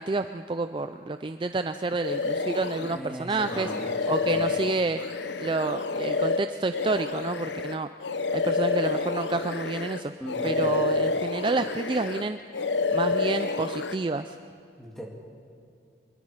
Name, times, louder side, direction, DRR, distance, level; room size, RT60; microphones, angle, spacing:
voice 1, 0.0-3.7 4.1-5.0 5.4-7.9 8.3-10.1 10.4-12.4 12.9-14.4, right 3 dB, 25° right, 9 dB, 0.4 m, -29 dB
sound 1, 2.0-3.0 3.4-10.0 10.3-12.3 12.5-13.9, left 4 dB, 70° left, 0.8 m, -28 dB
voice 2, 2.8-4.5 10.2-10.8 14.8-15.0, equal, ahead, -2 dB, 2.7 m, -39 dB
25.0 x 22.0 x 5.0 m, 2.5 s
head